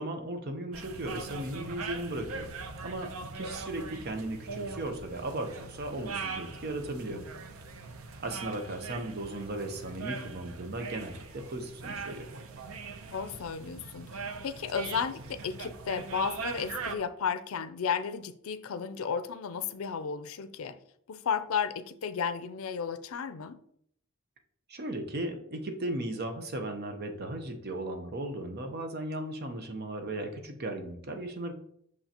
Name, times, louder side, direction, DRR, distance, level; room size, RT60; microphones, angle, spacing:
voice 1, 0.0-2.5 2.8-7.2 8.2-12.3 24.7-31.5, right 1 dB, 50° right, 0.8 m, -36 dB
sound 1, 0.7-17.0, right 4 dB, 80° right, 0.6 m, -41 dB
voice 2, 13.1-20.8 21.1-23.6, left 6 dB, 75° left, 0.4 m, -33 dB
6.4 x 5.7 x 2.8 m
head